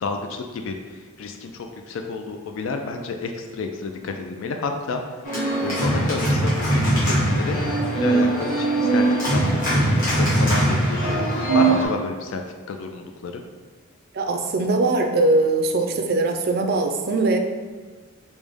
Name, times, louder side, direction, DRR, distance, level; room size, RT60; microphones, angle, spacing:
voice 1, 0.0-5.0 5.6-12.4 12.7-13.4, left 4 dB, 65° left, 4 dB, 0.3 m, -30 dB
Organ, 5.2-11.9, right 2 dB, 40° left, 1.2 m, -21 dB
voice 2, 14.1-17.4, right 2 dB, 45° right, 4 dB, 0.4 m, -21 dB
5.0 x 2.1 x 3.5 m, 1.4 s
head